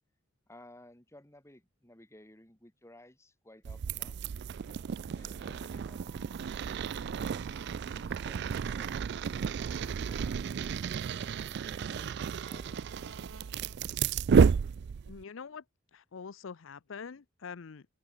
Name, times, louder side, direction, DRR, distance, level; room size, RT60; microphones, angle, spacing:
voice 1, 0.5-4.2 5.1-6.6 7.3-10.4 10.9-12.9, left 1 dB, 15° left, 2.7 m, -57 dB
sound 1, 3.6-15.2, right 6 dB, 55° right, 0.3 m, -31 dB
sound 2, 4.4-13.2, right 3 dB, 20° right, 2.6 m, -64 dB
sound 3, 5.7-14.1, right 2 dB, 90° right, 2.3 m, -57 dB
voice 2, 15.1-15.6 15.9-17.9, left 5 dB, 75° left, 0.6 m, -44 dB
open air
head